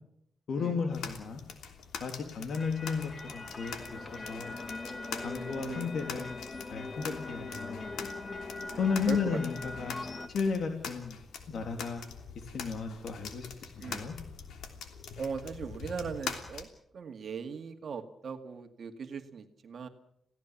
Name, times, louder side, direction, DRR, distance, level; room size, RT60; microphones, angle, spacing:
voice 1, 0.5-1.4 2.0-4.6 5.2-6.3 6.7-7.9 8.8-9.9 10.3-11.2 11.5-12.0 12.4-14.1, left 5 dB, 65° left, 4 dB, 3.0 m, -34 dB
sound 1, 0.9-16.6, left 6 dB, 90° left, 3.1 m, -44 dB
sound 2, 2.5-10.3, left 3 dB, 30° left, 1.8 m, -41 dB
voice 2, 5.2-5.9 8.7-9.4 13.8-14.0 15.2-16.7 16.9-19.9, right 6 dB, 55° right, 6 dB, 2.1 m, -39 dB
28.5 x 17.0 x 7.3 m, 0.75 s
cardioid pair, 110°, 0 cm